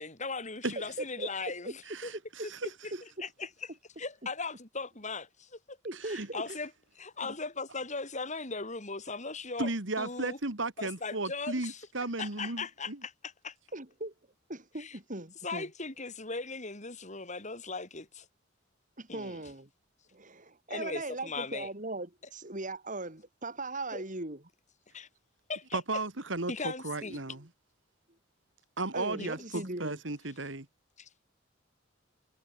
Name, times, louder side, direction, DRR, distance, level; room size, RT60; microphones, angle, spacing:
voice 1, 0.0-2.1 2.4-2.5 2.8-2.9 3.2-3.5 4.0-5.8 6.1-6.7 7.0-9.7 10.0-10.4 10.8-11.8 12.2-13.5 14.8-15.0 15.4-18.3 19.1-19.4 20.7-21.7 23.9-24.0 24.9-25.1 25.5-25.8 26.5-27.2 29.1-29.3 31.0-31.1, left 3 dB, 40° left, 6.4 m, -38 dB
voice 2, 1.9-2.6 6.0-6.3 9.6-13.0 25.7-27.5 28.8-30.7, right 2 dB, 70° right, 2.5 m, -35 dB
voice 3, 5.8-6.6 7.2-7.3 13.7-14.1 14.5-15.7 19.0-19.7 20.1-24.4 28.9-30.0, right 2 dB, 40° right, 4.8 m, -39 dB
head